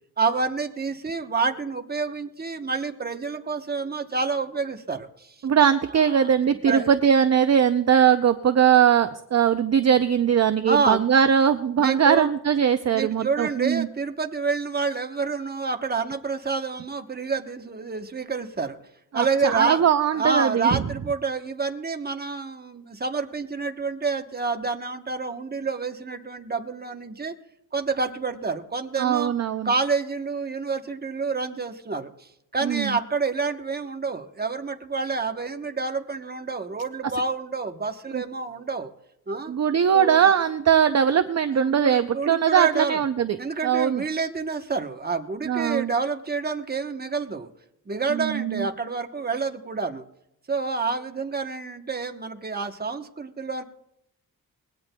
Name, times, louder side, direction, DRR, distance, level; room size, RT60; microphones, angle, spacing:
voice 1, 0.2-5.3 6.0-6.3 6.7-6.9 10.6-11.0 11.8-12.3 12.9-18.8 19.1-19.8 20.1-27.3 27.7-29.3 29.6-38.9 39.3-39.5 39.9-40.3 41.6-43.0 43.4-47.5 47.9-50.0 50.5-53.6, right 4 dB, 25° right, 5 dB, 1.0 m, -28 dB
voice 2, 5.4-13.9 19.1-20.8 29.0-29.7 32.6-33.0 38.1-38.2 39.5-44.0 45.5-45.9 48.1-48.7, right 8 dB, 45° right, 9 dB, 0.5 m, -20 dB
21.0 x 17.0 x 2.2 m, 0.79 s
wide cardioid pair, 125°, 37 cm